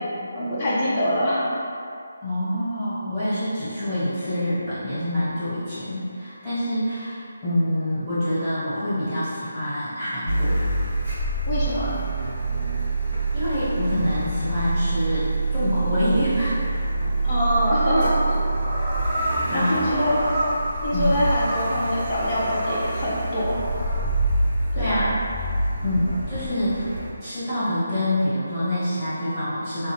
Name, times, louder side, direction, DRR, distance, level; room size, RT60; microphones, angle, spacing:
voice 1, 0.3-1.5 11.5-12.0 17.2-18.5 19.5-20.2 20.8-23.6 24.8-25.0, equal, 30° left, -9 dB, 0.6 m, -24 dB
voice 2, 2.2-10.6 13.3-16.7 19.5-20.0 20.9-21.2 24.7-25.2 25.8-26.9 27.2-29.9, left 1 dB, 5° right, -19 dB, 1.4 m, -26 dB
Car, 10.2-27.1, right 2 dB, 40° right, 0.9 m, -26 dB
sound 1, 17.2-24.0, right 1 dB, 20° right, 0.3 m, -31 dB
2.6 x 2.0 x 3.2 m, 2.4 s
figure-of-eight pair, 160°, 0 cm